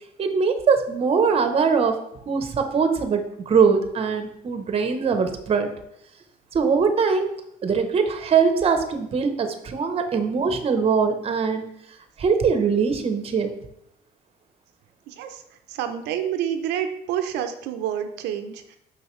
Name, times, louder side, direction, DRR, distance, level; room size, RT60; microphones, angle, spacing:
voice 1, 0.2-2.0 2.3-5.7 6.5-7.3 7.6-11.6 12.2-13.5, right 5 dB, 35° right, 7 dB, 0.8 m, -22 dB
voice 2, 15.1-15.4 15.7-18.8, right 10 dB, 90° right, 7 dB, 0.6 m, -28 dB
6.3 x 5.4 x 3.1 m, 0.77 s
cardioid pair, 110°, 17 cm